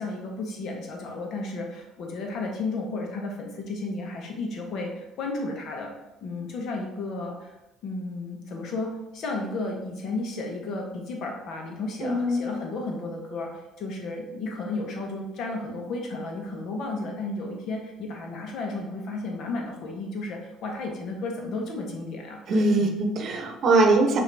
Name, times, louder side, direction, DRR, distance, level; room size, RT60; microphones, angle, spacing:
voice 1, 0.0-5.9 6.2-7.5 7.8-23.0, left 2 dB, 65° left, 1 dB, 1.1 m, -33 dB
voice 2, 12.0-12.5 22.5-24.2, right 2 dB, 55° right, 3 dB, 0.8 m, -22 dB
5.7 x 2.7 x 3.4 m, 0.96 s
supercardioid pair, 75°, 0 cm